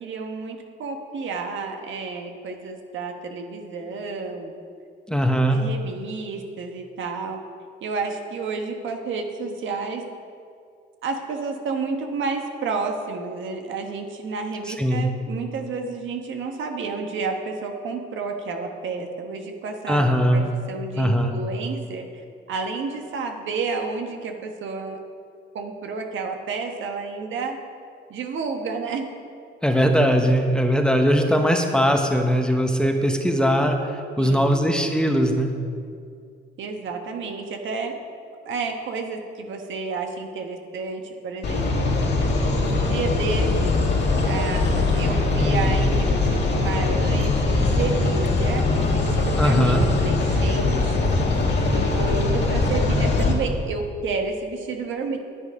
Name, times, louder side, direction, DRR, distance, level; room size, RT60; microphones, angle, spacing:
voice 1, 0.0-4.5 5.5-7.4 7.8-10.0 11.0-22.1 22.5-25.0 25.5-27.6 28.1-29.1 34.2-34.7 36.6-37.9 38.4-41.7 42.6-43.8 44.2-51.2 51.7-55.2, right 4 dB, 75° right, 3 dB, 1.3 m, -30 dB
voice 2, 5.1-5.6 14.7-15.1 19.9-20.5 21.0-21.4 29.6-35.5 45.4-45.8 49.4-49.8, equal, 5° left, 3 dB, 1.1 m, -20 dB
sound 1, 41.4-53.3, left 3 dB, 60° left, 2.3 m, -21 dB
9.9 x 9.3 x 5.3 m, 2.3 s
cardioid pair, 90°, 20 cm